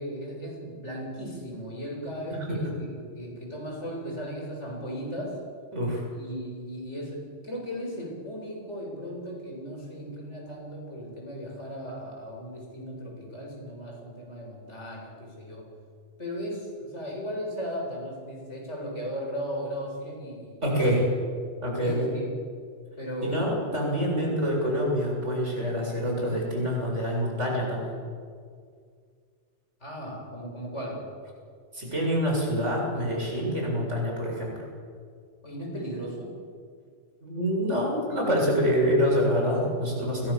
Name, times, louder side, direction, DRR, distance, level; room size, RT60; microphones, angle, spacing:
voice 1, 0.0-5.4 6.1-15.7 16.2-21.1 21.7-22.3 23.0-24.4 24.7-24.8 29.8-31.1 35.4-36.4, equal, 75° left, -1 dB, 8.5 m, -37 dB
voice 2, 2.4-2.7 5.7-6.0 20.6-21.0 21.6-22.1 23.2-28.0 31.7-34.6 37.2-40.3, equal, 90° right, -1 dB, 8.1 m, -26 dB
30.0 x 24.0 x 7.4 m, 2.1 s
omnidirectional pair, 1.2 m